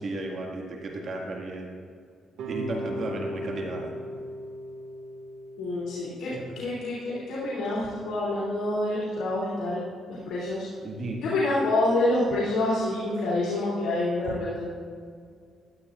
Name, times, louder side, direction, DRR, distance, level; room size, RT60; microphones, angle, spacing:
voice 1, 0.0-1.8 2.5-3.9 6.3-6.6 10.8-11.2, right 2 dB, 55° right, 0 dB, 1.9 m, -34 dB
sound 1, 2.4-7.5, equal, 80° right, 2.1 m, -38 dB
voice 2, 5.6-9.8 10.1-10.7 11.2-14.6, left 2 dB, 80° left, -8 dB, 2.8 m, -27 dB
14.5 x 11.5 x 2.5 m, 2.1 s
cardioid pair, 90°, 0 cm